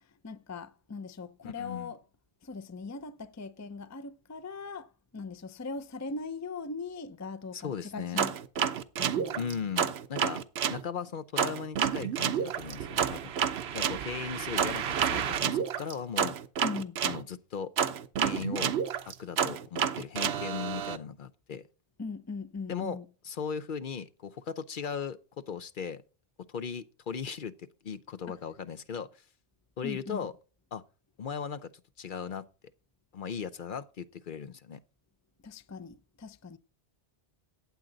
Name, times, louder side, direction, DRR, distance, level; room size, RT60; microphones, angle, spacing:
voice 1, 0.2-2.0 2.4-8.7 9.0-9.7 16.6-17.0 22.0-23.0 29.8-30.3 35.4-36.6, left 4 dB, 20° left, 0.4 m, -40 dB
voice 2, 1.4-1.9 7.5-8.2 9.4-10.4 10.7-13.3 13.7-16.4 17.0-17.7 18.2-18.7 19.1-21.6 22.7-23.0 23.3-26.0 26.5-29.1 29.8-30.3 30.7-30.8 31.2-31.7 32.0-32.5 33.1-34.8, left 7 dB, 55° left, 0.8 m, -37 dB
sound 1, 8.2-10.8 11.4-17.2 17.8-21.0, right 8 dB, 75° right, 1.0 m, -30 dB
15.0 x 8.8 x 3.9 m
omnidirectional pair, 1.1 m